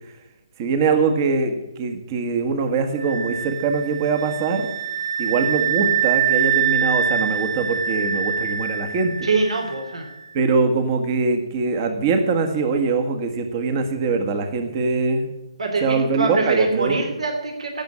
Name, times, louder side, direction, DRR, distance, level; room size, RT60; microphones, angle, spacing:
voice 1, 0.6-4.7 5.2-9.3 10.3-15.3 15.8-17.0, right 4 dB, 30° right, 7 dB, 1.5 m, -22 dB
sound 1, 3.0-9.8, right 8 dB, 50° right, 0.9 m, -24 dB
voice 2, 9.2-10.1 15.6-17.8, right 3 dB, 70° right, 4 dB, 3.0 m, -23 dB
17.5 x 6.4 x 8.6 m, 0.98 s
hypercardioid pair, 160°, 3 cm